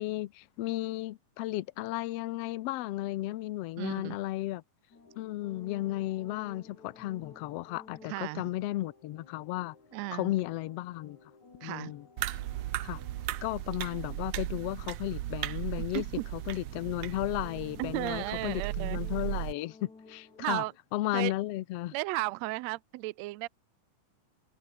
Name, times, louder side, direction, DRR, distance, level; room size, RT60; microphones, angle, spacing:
voice 1, 0.0-4.6 5.2-9.8 10.1-11.2 11.6-12.4 12.8-13.0 13.4-16.0 16.5-20.6 20.9-21.9, left 16 dB, 90° left, 1.3 m, -34 dB
voice 2, 3.8-4.2 8.1-8.5 9.9-10.3 11.6-11.9 15.9-16.2 17.8-19.0 20.4-20.7 21.1-21.3 21.9-23.5, right 20 dB, 85° right, 1.5 m, -34 dB
sound 1, 4.9-20.8, left 3 dB, 60° left, 8.0 m, -55 dB
sound 2, 12.2-19.5, right 15 dB, 70° right, 1.8 m, -36 dB
omnidirectional pair, 3.8 m